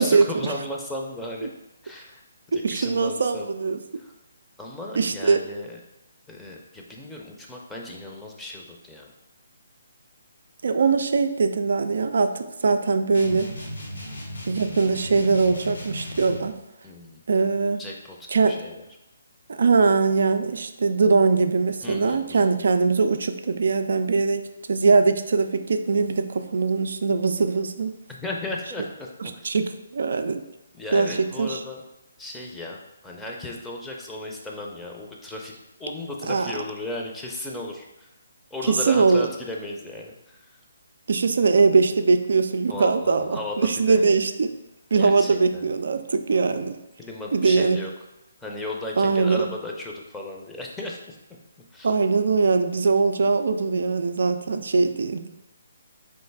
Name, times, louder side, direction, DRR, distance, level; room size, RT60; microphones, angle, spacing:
voice 1, 0.0-1.5 1.8-2.2 2.5-3.5 3.9-4.1 4.6-5.8 6.3-9.1 16.8-17.2 17.8-18.8 21.8-22.6 28.1-29.1 29.3-29.5 30.7-31.8 32.2-38.1 38.5-40.6 42.7-44.1 44.9-45.7 47.0-47.9 48.4-51.2 51.7-51.9, left 2 dB, 5° left, -2 dB, 0.6 m, -35 dB
voice 2, 2.5-3.8 5.0-5.4 10.6-13.5 14.5-16.6 17.3-17.8 18.3-18.6 19.5-24.4 24.7-27.9 29.2-30.4 30.9-31.6 36.3-36.5 38.6-39.3 41.1-44.6 44.9-46.7 47.3-47.8 49.0-49.5 51.8-55.2, right 4 dB, 65° right, 8 dB, 0.3 m, -21 dB
sound 1, 13.1-16.5, left 1 dB, 75° left, 1.2 m, -36 dB
3.9 x 3.2 x 3.4 m, 0.95 s
figure-of-eight pair, 145°, 0 cm